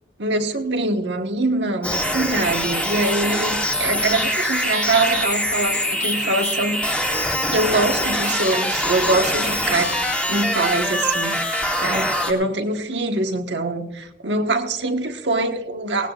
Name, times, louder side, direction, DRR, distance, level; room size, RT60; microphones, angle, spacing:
voice 1, 0.2-6.8 7.5-16.1, right 2 dB, 80° right, 4 dB, 1.4 m, -24 dB
sound 1, 1.8-12.3, equal, 5° left, 2.0 m, -23 dB
19.0 x 18.0 x 2.4 m, 0.85 s
head